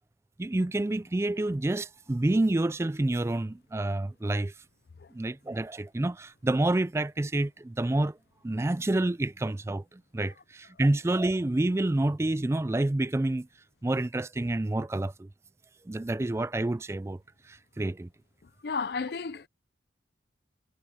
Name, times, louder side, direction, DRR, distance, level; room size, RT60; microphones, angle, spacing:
voice 1, 0.4-4.5 5.1-8.2 8.4-13.5 13.8-15.3 15.9-17.2 17.5-18.1, right 2 dB, 15° right, 0.3 m, -28 dB
voice 2, 18.6-19.5, left 5 dB, 60° left, 0.5 m, -32 dB
head